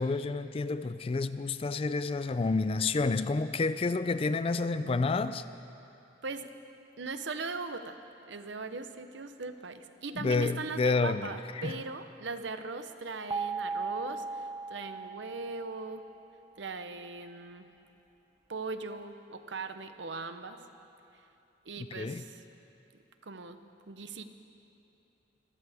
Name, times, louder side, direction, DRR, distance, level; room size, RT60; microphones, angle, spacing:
voice 1, 0.0-5.4 10.2-11.3 11.6-11.7 21.8-22.2, left 3 dB, 30° left, 13 dB, 0.3 m, -29 dB
voice 2, 7.0-8.0 8.3-16.0 16.6-17.7 18.5-20.6 21.6-22.4 23.2-23.6 23.9-24.2, right 4 dB, 75° right, 9 dB, 0.8 m, -39 dB
sound 1, 13.3-16.3, right 4 dB, 20° right, 0.6 m, -37 dB
25.5 x 15.0 x 3.5 m, 2.8 s
head